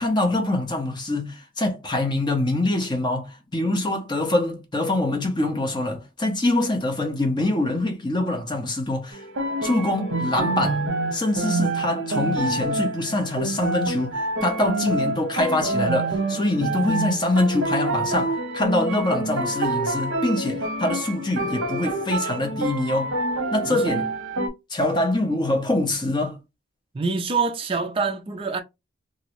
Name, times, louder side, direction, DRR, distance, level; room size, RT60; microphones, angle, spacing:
voice 1, 0.0-9.2 9.6-10.8 11.1-23.1 23.5-24.1 24.7-26.4, left 2 dB, 20° left, 0.6 m, -24 dB
sound 1, 9.1-24.5, right 2 dB, 65° right, 0.8 m, -27 dB
voice 2, 26.9-28.6, right 4 dB, 25° right, 0.3 m, -25 dB
2.9 x 2.6 x 3.0 m
head